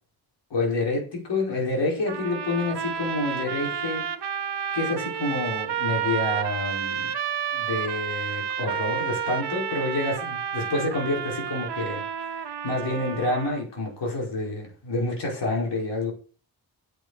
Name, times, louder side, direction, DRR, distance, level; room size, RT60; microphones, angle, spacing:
voice 1, 0.5-4.0 4.7-7.2 7.5-12.0 12.3-16.1, left 2 dB, 90° left, -1 dB, 5.4 m, -28 dB
sound 1, 2.1-13.6, right 8 dB, 75° right, 1.2 m, -30 dB
9.2 x 8.2 x 6.6 m, 0.39 s
cardioid pair, 45°, 41 cm